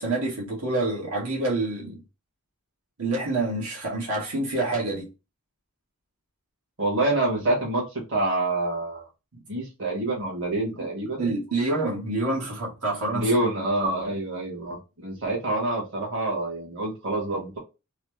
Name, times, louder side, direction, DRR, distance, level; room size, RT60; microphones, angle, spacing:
voice 1, 0.0-2.0 3.0-5.1 9.3-9.4 11.2-13.3, right 2 dB, 80° right, 1.3 m, -27 dB
voice 2, 6.8-9.1 9.5-11.3 13.1-17.6, right 2 dB, 55° right, 1.4 m, -27 dB
3.1 x 2.1 x 3.2 m
head